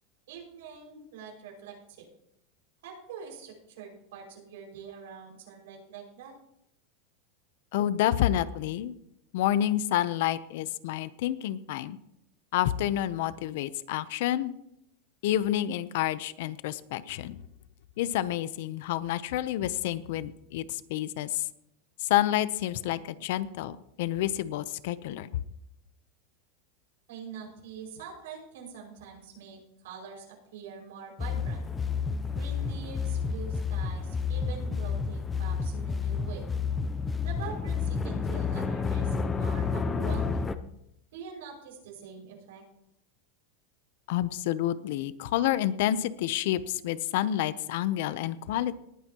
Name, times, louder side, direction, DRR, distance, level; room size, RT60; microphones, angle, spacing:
voice 1, 0.3-2.1 2.8-6.3 27.1-31.7 32.3-36.5 37.2-40.6 41.1-42.6, right 6 dB, 80° right, 0 dB, 5.6 m, -44 dB
voice 2, 7.7-8.9 9.3-12.0 12.5-14.5 15.2-17.4 18.0-21.4 22.0-25.3 44.1-48.8, left 12 dB, 60° left, 16 dB, 0.7 m, -29 dB
sound 1, 31.2-40.5, left 5 dB, 10° left, 0.6 m, -30 dB
19.5 x 10.5 x 2.9 m, 0.79 s
supercardioid pair, 170°, 0 cm